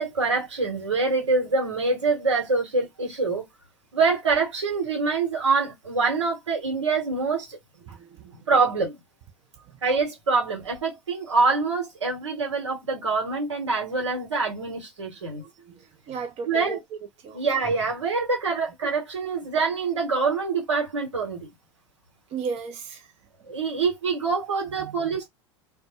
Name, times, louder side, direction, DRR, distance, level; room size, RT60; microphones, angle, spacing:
voice 1, 0.0-3.4 3.9-7.6 8.5-9.0 9.8-15.4 16.5-16.8 17.3-21.5 23.5-25.3, right 4 dB, 90° right, 1.0 m, -25 dB
voice 2, 7.8-8.3 9.7-9.8 15.3-16.8 17.2-17.4 22.3-23.1 24.8-25.2, right 5 dB, 45° right, 0.6 m, -36 dB
2.1 x 2.1 x 2.8 m
hypercardioid pair, 85°, 15 cm